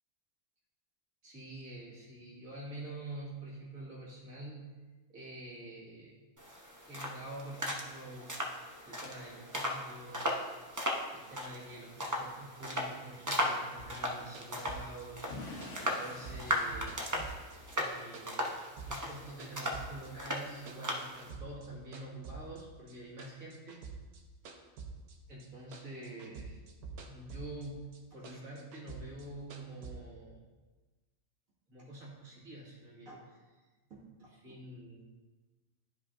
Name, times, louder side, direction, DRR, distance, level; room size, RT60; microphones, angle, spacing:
voice 1, 1.2-4.6 5.1-6.1 6.9-8.3 8.8-10.4 11.1-17.0 17.7-18.6 18.9-23.8 25.3-26.6 27.1-30.4 31.7-33.4 33.9-35.1, right 1 dB, 65° right, -5 dB, 2.3 m, -47 dB
sound 1, 6.4-21.3, equal, 20° right, 0.5 m, -37 dB
sound 2, 13.8-17.9 18.1-20.1 20.3-21.7 21.9-25.5 25.7-27.7 27.9-29.9, right 4 dB, 80° right, 1.3 m, -47 dB
Explosion / Shatter, 15.3-18.1, left 2 dB, 55° left, 1.3 m, -47 dB
12.0 x 5.1 x 2.6 m, 1.3 s
omnidirectional pair, 1.5 m